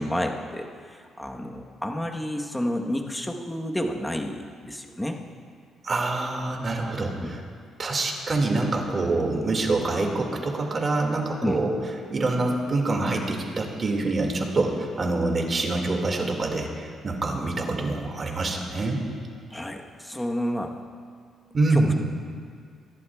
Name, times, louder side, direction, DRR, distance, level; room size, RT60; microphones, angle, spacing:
voice 1, 0.0-5.2 7.2-7.4 11.4-11.6 19.5-20.8 21.7-22.0, left 1 dB, 10° left, 2 dB, 1.1 m, -30 dB
voice 2, 5.8-7.4 7.8-11.7 12.1-19.0 21.5-21.9, right 2 dB, 35° right, 1 dB, 2.1 m, -26 dB
24.0 x 11.5 x 2.4 m, 2.1 s
cardioid pair, 90°, 0 cm